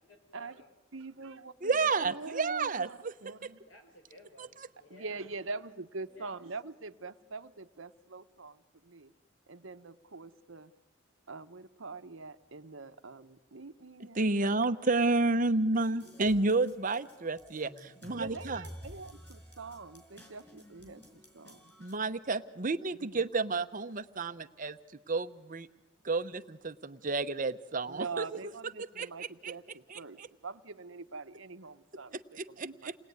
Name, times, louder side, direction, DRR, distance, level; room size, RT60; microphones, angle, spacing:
voice 1, 0.3-0.7 3.7-5.3 6.1-6.3, left 1 dB, 65° left, 3 dB, 6.9 m, -56 dB
voice 2, 0.9-3.6 4.9-9.1 9.5-10.7 11.3-15.2 15.7-15.8 18.1-21.7 23.0-23.2 27.9-32.9, right 3 dB, 65° right, 10 dB, 1.0 m, -44 dB
voice 3, 1.6-3.1 14.1-18.6 21.8-24.8 25.1-25.7 26.0-28.2 29.0-29.5 29.9-30.3 32.4-32.9, right 3 dB, 40° right, 11 dB, 0.8 m, -31 dB
sound 1, 15.8-21.9, equal, 10° left, 5.2 m, -52 dB
29.0 x 20.5 x 9.5 m, 1.1 s
head